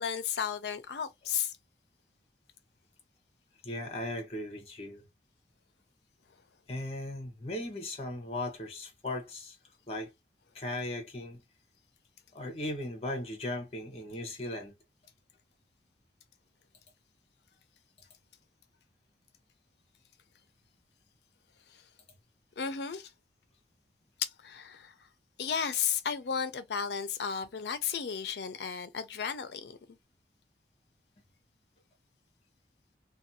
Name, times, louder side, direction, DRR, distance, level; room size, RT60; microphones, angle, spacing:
voice 1, 0.0-1.5 22.6-23.1 24.2-24.9 25.4-29.7, left 7 dB, 70° left, 0.5 m, -33 dB
voice 2, 3.6-5.0 6.7-9.6 9.9-10.1 10.5-11.4 12.3-14.7, left 1 dB, 35° left, 0.8 m, -37 dB
2.5 x 2.2 x 2.7 m
head